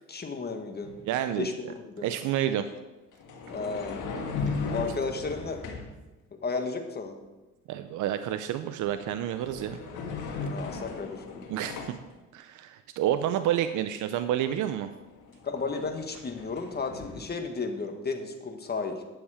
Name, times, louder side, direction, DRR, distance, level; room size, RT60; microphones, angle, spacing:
voice 1, 0.1-0.9 1.3-2.1 3.5-4.0 4.6-5.6 6.4-7.2 10.4-11.4 15.4-19.0, left 4 dB, 35° left, 5 dB, 1.5 m, -33 dB
sound 1, 0.8-1.0 3.1-6.0 8.7-8.9 9.2-12.1 14.5-14.6 14.9-17.2, left 4 dB, 80° left, 1.7 m, -37 dB
voice 2, 1.1-1.5 2.0-2.7 4.5-4.6 7.7-9.8 11.5-12.0 12.3-14.9, right 11 dB, 80° right, 10 dB, 0.6 m, -29 dB
10.0 x 7.2 x 4.9 m, 1.1 s
cardioid pair, 90°, 30 cm